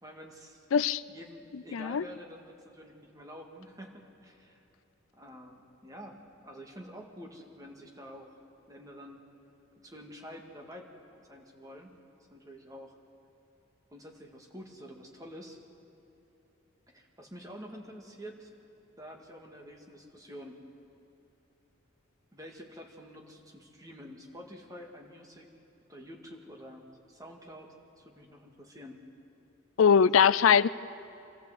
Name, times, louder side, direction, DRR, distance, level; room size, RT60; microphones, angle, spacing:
voice 1, 0.0-0.7 1.1-4.6 5.1-8.4 8.7-9.2 9.8-10.9 11.3-12.0 12.3-13.0 13.9-15.6 16.9-18.5 19.0-20.6 22.3-25.5 25.9-29.0 30.2-30.3, equal, 15° right, 1 dB, 2.0 m, -48 dB
voice 2, 0.7-1.0 1.7-2.0 29.8-30.7, left 7 dB, 80° left, 18 dB, 0.4 m, -21 dB
25.0 x 14.5 x 8.1 m, 3.0 s
head